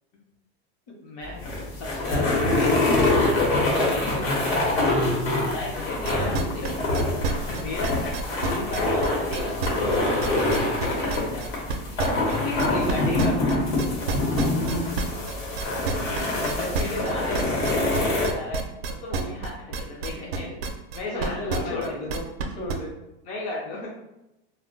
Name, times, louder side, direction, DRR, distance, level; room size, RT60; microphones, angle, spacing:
voice 1, 1.0-1.4 1.7-4.3 5.2-6.7 7.5-8.0 8.4-10.4 10.9-11.5 12.2-13.6 15.7-18.6 19.0-20.6 20.9-22.0 23.2-23.9, left 2 dB, 25° left, -4 dB, 0.3 m, -34 dB
sound 1, 1.2-18.3, left 2 dB, 85° left, 1.1 m, -25 dB
sound 2, 6.0-12.9 13.2-22.7, right 4 dB, 75° right, 0.5 m, -29 dB
voice 2, 6.6-7.1 8.0-8.5 12.0-12.4 21.0-22.3 22.5-22.9, left 1 dB, 50° left, 0 dB, 0.8 m, -35 dB
2.2 x 2.1 x 3.7 m, 0.92 s
supercardioid pair, 160°, 30 cm